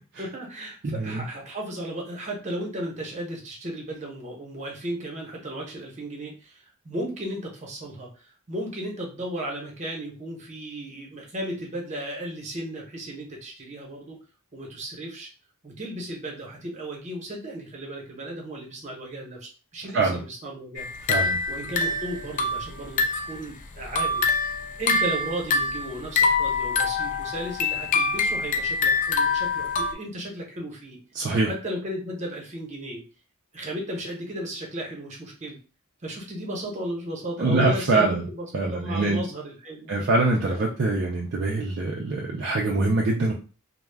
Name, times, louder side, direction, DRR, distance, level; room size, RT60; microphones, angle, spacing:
voice 1, 0.2-14.2 14.5-15.3 15.6-20.9 21.2-24.5 24.8-31.0 31.4-33.0 33.5-35.6 36.0-38.5 38.7-39.9 40.4-40.7, right 1 dB, 35° right, -1 dB, 0.8 m, -35 dB
voice 2, 0.8-1.3 19.9-20.2 21.1-21.4 31.2-31.5 37.4-38.2 38.5-39.2 39.9-43.3, right 2 dB, 50° right, -1 dB, 0.4 m, -24 dB
sound 1, 20.8-23.4 23.8-29.9, left 4 dB, 35° left, 0.3 m, -25 dB
2.3 x 2.1 x 3.3 m, 0.35 s
head